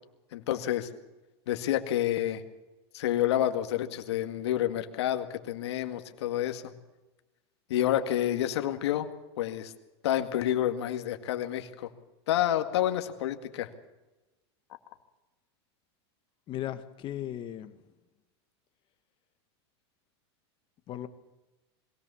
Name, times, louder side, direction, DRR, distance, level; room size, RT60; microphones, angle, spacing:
voice 1, 0.3-0.9 1.5-2.4 2.9-6.7 7.7-9.1 9.4-9.7 10.0-11.9 12.3-13.7, left 12 dB, 80° left, 2.0 m, -29 dB
voice 2, 16.5-17.7 20.9-21.1, left 12 dB, 35° left, 1.6 m, -36 dB
22.0 x 17.0 x 7.0 m
supercardioid pair, 130°, 14 cm